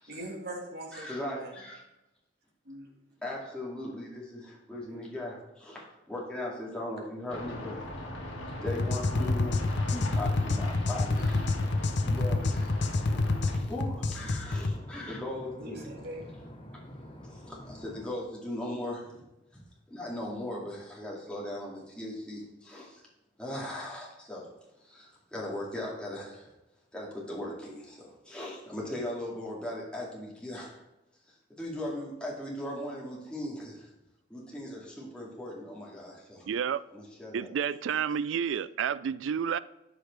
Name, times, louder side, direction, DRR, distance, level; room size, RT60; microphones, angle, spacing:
voice 1, 0.1-1.5 2.7-2.9 15.6-16.3, right 1 dB, 60° right, 1.6 m, -41 dB
voice 2, 0.9-1.8 3.2-7.9 8.6-9.6 9.9-11.5 12.0-12.8 13.5-15.9 17.3-19.2 19.5-19.6 19.9-23.0 23.4-24.5 24.8-26.5 26.9-30.8 31.3-33.9 34.3-36.5 36.9-37.5, left 1 dB, 5° left, 2.2 m, -38 dB
sound 1, 7.3-13.6, left 1 dB, 85° left, 1.6 m, -40 dB
sound 2, 8.7-14.8, left 2 dB, 60° left, 0.6 m, -28 dB
sound 3, 11.0-18.1, equal, 30° left, 1.1 m, -47 dB
voice 3, 36.5-36.8 37.3-39.6, right 7 dB, 75° right, 0.3 m, -30 dB
13.0 x 4.9 x 3.3 m
head